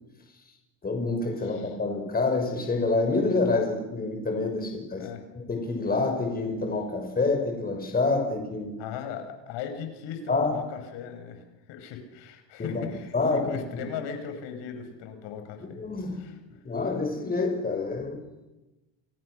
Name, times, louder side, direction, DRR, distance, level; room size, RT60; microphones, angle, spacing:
voice 1, 0.8-5.1 5.3-8.8 10.3-10.6 12.6-12.8 13.1-13.8 15.6-16.2 16.6-18.3, left 3 dB, 20° left, 6.9 m, -27 dB
voice 2, 1.4-1.7 5.0-5.2 8.8-15.8 16.1-16.4, left 7 dB, 70° left, 6.2 m, -38 dB
30.0 x 28.0 x 6.7 m
cardioid pair, 130°, 45 cm